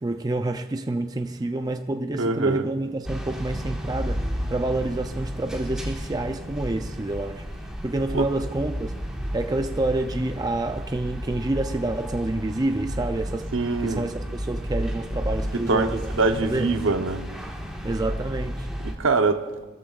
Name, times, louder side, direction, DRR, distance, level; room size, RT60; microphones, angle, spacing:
voice 1, 0.0-7.5 7.8-8.9 9.3-13.5 13.8-16.1 16.4-16.7 17.8-18.7, right 2 dB, 20° right, 0.4 m, -28 dB
voice 2, 2.1-2.7 8.1-8.3 13.5-14.1 15.5-17.3 18.8-19.6, right 3 dB, 70° right, 0.9 m, -24 dB
sound 1, 3.0-18.9, equal, 5° right, 1.5 m, -32 dB
22.0 x 14.0 x 2.4 m
head